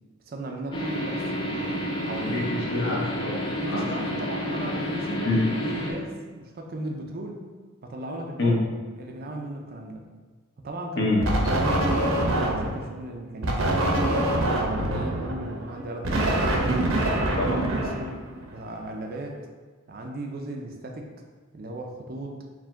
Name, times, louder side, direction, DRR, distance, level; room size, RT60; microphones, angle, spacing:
voice 1, 0.3-2.4 3.5-7.4 7.8-8.5 9.0-10.1 10.6-11.1 11.5-13.8 14.1-16.6 16.9-18.2 18.5-19.4 19.9-21.1 21.5-22.4, right 1 dB, 45° right, 2 dB, 0.4 m, -36 dB
sound 1, 0.7-5.9, equal, 20° left, 0.4 m, -30 dB
voice 2, 2.2-3.8 5.2-5.4 8.4-8.6 11.0-11.2 17.4-17.6, left 2 dB, 55° left, -3 dB, 0.8 m, -26 dB
sound 2, 11.2-12.8 13.4-18.6, right 1 dB, 80° right, 0.7 m, -25 dB
4.7 x 2.1 x 3.6 m, 1.4 s
head